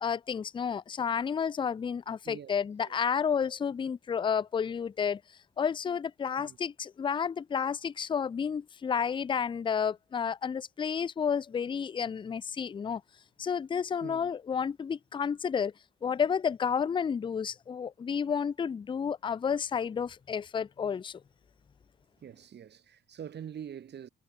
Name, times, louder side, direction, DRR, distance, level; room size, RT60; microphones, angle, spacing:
voice 1, 0.0-5.2 5.6-13.0 13.4-15.7 16.0-21.2, left 7 dB, 25° left, 0.4 m, -31 dB
voice 2, 14.0-14.3 22.2-24.1, right 9 dB, 60° right, 4.8 m, -44 dB
cardioid pair, 90°, 20 cm